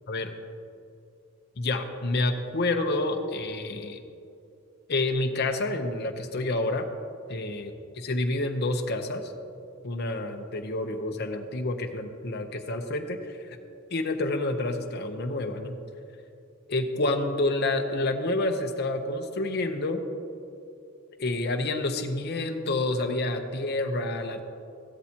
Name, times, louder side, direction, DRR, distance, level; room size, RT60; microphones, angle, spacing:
voice 1, 1.6-4.0 4.9-6.8 7.3-7.7 8.0-9.3 9.8-13.6 13.9-15.8 16.7-20.0 21.2-24.4, left 2 dB, 50° left, 4 dB, 0.8 m, -28 dB
15.5 x 13.0 x 2.9 m, 2.6 s
head